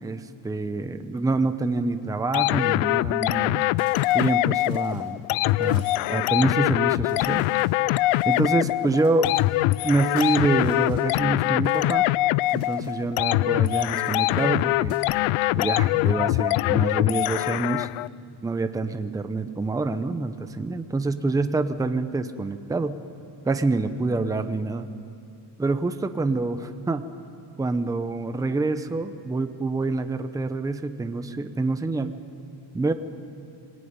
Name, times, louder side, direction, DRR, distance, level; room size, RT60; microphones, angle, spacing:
voice 1, 0.0-3.7 4.1-5.2 5.6-7.4 8.2-9.3 9.8-12.0 12.5-15.0 15.5-17.9 18.4-23.0 23.4-24.9 25.6-27.0 27.6-32.1 32.7-32.9, right 3 dB, 5° right, 9 dB, 0.7 m, -26 dB
sound 1, 2.3-18.1, left 18 dB, 80° left, 0.6 m, -23 dB
sound 2, 3.8-6.0 7.1-9.7 10.2-11.9 12.3-13.0 13.6-15.1, left 4 dB, 55° left, 5.7 m, -52 dB
25.5 x 19.0 x 9.6 m, 2.5 s
cardioid pair, 165°, 49 cm